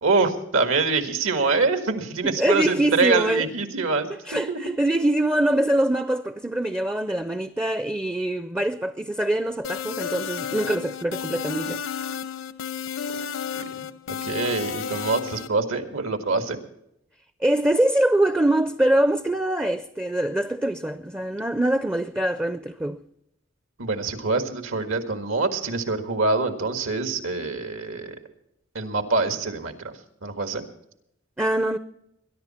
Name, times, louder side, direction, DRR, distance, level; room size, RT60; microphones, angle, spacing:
voice 1, 0.0-4.1 4.5-4.6 13.5-13.7 14.1-16.6 23.8-28.2 28.7-29.9 30.2-30.7, right 3 dB, 85° right, 1.8 m, -25 dB
voice 2, 2.2-3.5 4.3-11.8 17.4-23.0 31.4-31.8, right 1 dB, 10° right, 0.4 m, -24 dB
sound 1, 9.6-15.5, left 7 dB, 75° left, 0.9 m, -32 dB
21.5 x 11.0 x 4.3 m
head